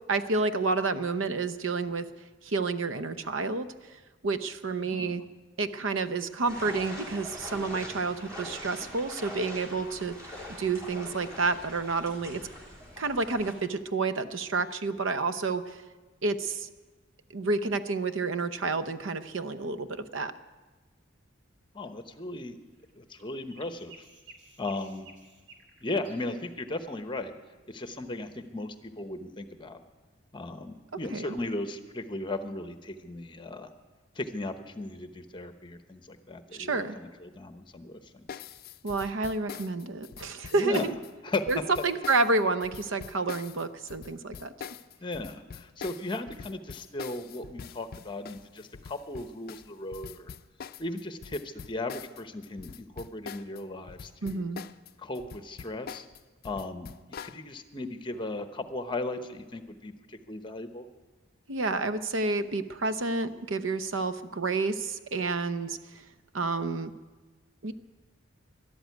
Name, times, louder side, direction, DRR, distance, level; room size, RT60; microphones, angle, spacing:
voice 1, 0.1-2.1 2.4-5.2 5.6-10.1 10.6-12.4 13.0-15.8 16.2-16.7 17.3-20.3 31.1-31.4 36.5-37.0 38.8-41.0 41.5-44.5 54.2-54.6 61.5-66.0 66.3-66.9 67.6-67.7, right 3 dB, 85° right, 12 dB, 0.8 m, -29 dB
voice 2, 4.8-5.1 21.7-22.6 22.9-24.1 24.6-25.1 25.8-27.3 27.7-29.8 30.3-33.7 34.1-38.3 40.6-40.9 41.2-41.4 45.0-50.3 50.8-54.4 55.0-56.1 56.4-56.9 57.2-60.9, left 2 dB, 25° left, 9 dB, 1.0 m, -36 dB
sound 1, 6.5-13.5, left 1 dB, 20° right, 3.5 m, -43 dB
sound 2, 22.8-26.1, right 3 dB, 65° right, 2.4 m, -53 dB
sound 3, 38.3-53.6 53.9-57.4, left 7 dB, 50° left, 0.4 m, -44 dB
13.0 x 12.0 x 9.3 m, 1.3 s
head